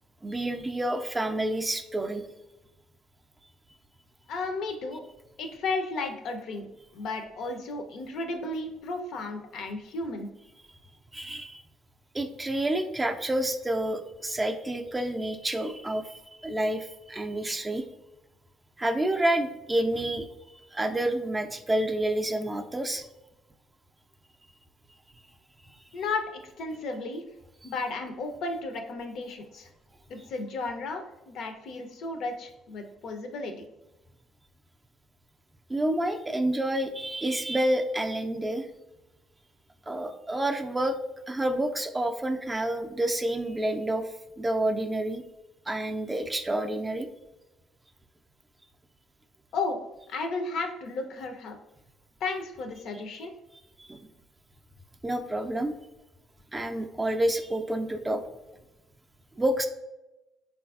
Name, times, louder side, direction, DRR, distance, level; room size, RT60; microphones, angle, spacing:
voice 1, 0.2-2.2 11.1-11.6 12.1-16.1 16.4-17.8 18.8-20.3 20.7-23.0 35.7-38.7 39.9-41.0 41.3-44.1 44.4-45.2 45.7-47.1 52.9-53.0 53.8-54.1 55.0-55.7 56.5-58.2 59.4-59.7, right 1 dB, 20° right, 5 dB, 0.4 m, -28 dB
voice 2, 4.3-5.0 5.4-6.7 6.9-10.3 25.9-27.2 27.6-29.7 30.1-33.5 49.5-49.8 50.1-51.6 52.2-53.3, left 3 dB, 65° left, 5 dB, 0.5 m, -33 dB
3.3 x 2.4 x 2.3 m, 0.97 s
supercardioid pair, 65°, 0 cm